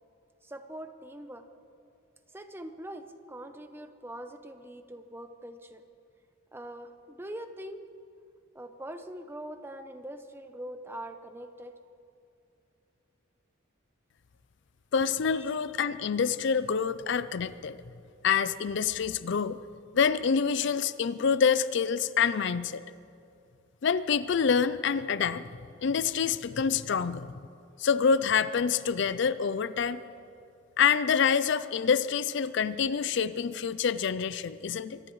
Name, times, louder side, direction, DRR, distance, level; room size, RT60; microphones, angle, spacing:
voice 1, 0.4-1.4 2.3-5.9 6.5-7.8 8.5-11.7 15.3-15.4, right 1 dB, 10° right, 8 dB, 0.7 m, -43 dB
voice 2, 14.9-17.8 18.2-19.6 19.9-22.8 23.8-25.4 25.8-27.3 27.8-30.0 30.8-35.0, left 6 dB, 55° left, 15 dB, 0.4 m, -27 dB
24.0 x 18.5 x 3.2 m, 2.6 s
head